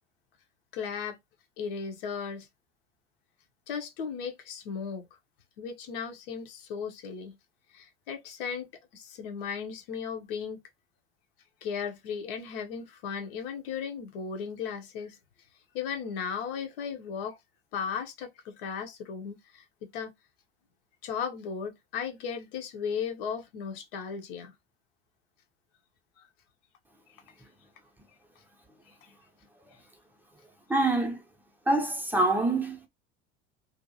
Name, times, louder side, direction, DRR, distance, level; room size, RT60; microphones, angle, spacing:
voice 1, 0.7-1.2 1.6-2.5 3.7-5.1 5.6-7.4 7.7-10.6 11.6-15.2 15.7-17.4 17.7-20.1 21.0-24.5 26.2-26.3 27.1-27.2 28.9-29.0, left 6 dB, 55° left, 0.8 m, -36 dB
voice 2, 30.7-31.2 31.7-32.9, right 2 dB, 5° right, 0.7 m, -25 dB
2.7 x 2.5 x 2.7 m
figure-of-eight pair, 75°, 34 cm